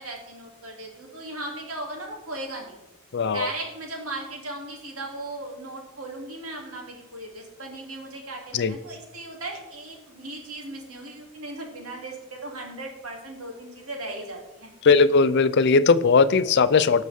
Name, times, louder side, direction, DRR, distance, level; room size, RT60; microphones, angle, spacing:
voice 1, 0.0-2.8 3.3-15.1, right 2 dB, 85° right, 0 dB, 2.9 m, -37 dB
voice 2, 3.1-3.5 8.5-8.7 14.8-17.0, left 4 dB, 55° left, 14 dB, 0.5 m, -18 dB
18.0 x 6.5 x 3.6 m, 0.96 s
head